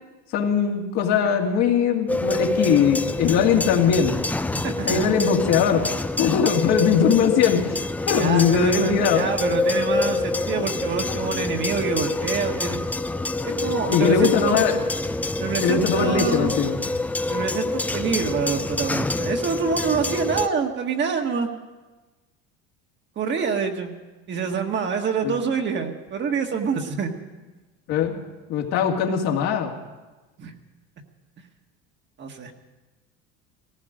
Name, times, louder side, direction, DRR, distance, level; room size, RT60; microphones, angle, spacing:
voice 1, 0.3-4.2 4.8-5.8 6.2-7.8 8.1-9.2 13.5-14.8 15.6-16.8 25.2-25.3 27.9-28.2 28.5-29.7, left 7 dB, 60° left, 1 dB, 2.2 m, -20 dB
sound 1, 2.1-20.5, left 2 dB, 5° left, 0.4 m, -26 dB
voice 2, 4.5-5.0 8.2-12.8 13.4-14.6 15.4-16.5 17.2-21.5 23.1-23.9 24.3-27.1 30.4-30.5 32.2-32.5, right 5 dB, 35° right, 4 dB, 1.6 m, -26 dB
17.5 x 15.5 x 5.1 m, 1.2 s
supercardioid pair, 115°, 30 cm